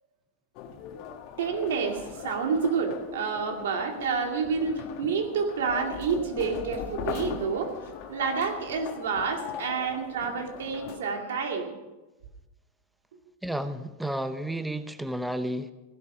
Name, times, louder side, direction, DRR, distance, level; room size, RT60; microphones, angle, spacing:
sound 1, 0.5-11.0, left 8 dB, 55° left, 1.7 m, -40 dB
voice 1, 1.4-7.8 8.1-11.7, right 5 dB, 90° right, 3 dB, 2.3 m, -29 dB
voice 2, 13.4-15.7, right 1 dB, 5° right, 11 dB, 0.7 m, -32 dB
16.0 x 11.5 x 5.4 m, 1.1 s
supercardioid pair, 130°, 0 cm